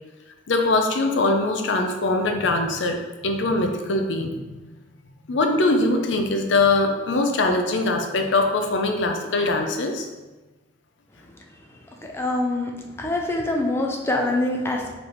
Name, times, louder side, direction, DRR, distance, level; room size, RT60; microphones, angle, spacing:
voice 1, 0.5-4.6 5.3-10.1, left 2 dB, 70° left, 4 dB, 0.5 m, -22 dB
voice 2, 12.0-14.9, left 2 dB, 15° left, 1 dB, 0.5 m, -25 dB
5.0 x 3.3 x 3.0 m, 1.2 s
head